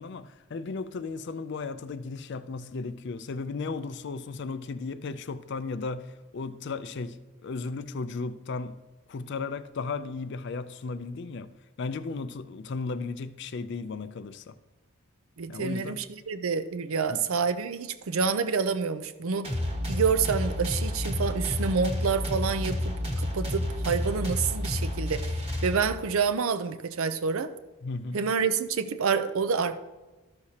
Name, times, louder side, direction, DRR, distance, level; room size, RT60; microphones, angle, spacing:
voice 1, 0.0-8.8 9.1-11.5 11.8-14.6 15.5-16.0 17.1-17.2 27.8-28.2, left 4 dB, 50° left, 0.4 m, -35 dB
voice 2, 15.4-19.5 19.9-27.5 28.1-29.8, right 5 dB, 70° right, 0.5 m, -28 dB
sound 1, 19.4-26.2, left 1 dB, 25° right, 1.3 m, -30 dB
13.0 x 6.4 x 2.8 m
head